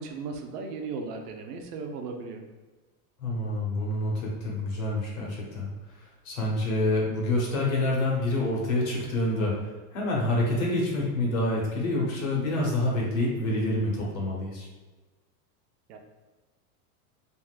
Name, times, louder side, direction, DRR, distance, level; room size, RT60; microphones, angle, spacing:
voice 1, 0.0-2.4 15.9-16.0, right 4 dB, 90° right, 4 dB, 0.7 m, -36 dB
voice 2, 3.2-5.7 6.2-14.7, left 1 dB, 60° left, -3 dB, 1.1 m, -27 dB
3.5 x 2.4 x 2.4 m, 1.3 s
supercardioid pair, 180°, 46 cm